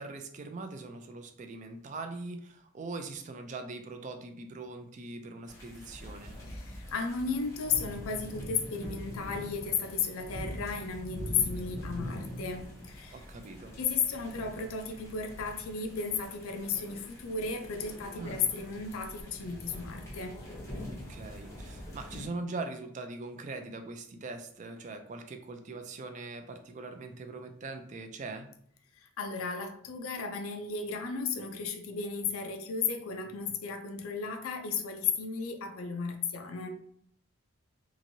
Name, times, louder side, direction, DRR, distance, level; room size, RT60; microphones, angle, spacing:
voice 1, 0.0-6.4 13.1-13.8 18.2-18.5 20.9-28.5, right 3 dB, 35° right, 7 dB, 0.3 m, -41 dB
sound 1, 5.5-22.3, equal, 15° left, 0.6 m, -43 dB
voice 2, 6.5-13.1 13.8-20.4 29.0-36.7, left 5 dB, 85° left, 5 dB, 0.4 m, -34 dB
2.9 x 2.5 x 2.7 m, 0.66 s
head